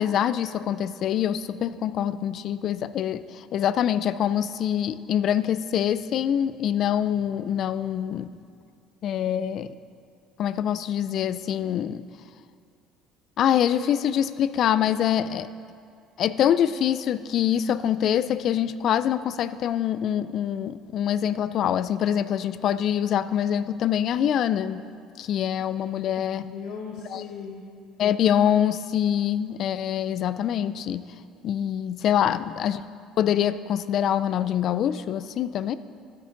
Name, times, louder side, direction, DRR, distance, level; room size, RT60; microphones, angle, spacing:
voice 1, 0.0-8.3 9.0-9.7 10.4-12.0 13.4-15.5 16.2-24.8 25.2-26.5 27.1-27.2 28.0-31.0 31.4-32.8 33.2-35.7, left 10 dB, 45° left, 14 dB, 0.3 m, -25 dB
voice 2, 26.4-27.7 32.2-32.6, left 5 dB, 75° left, -2 dB, 1.1 m, -38 dB
12.5 x 8.2 x 3.7 m, 2.3 s
cardioid pair, 155°, 0 cm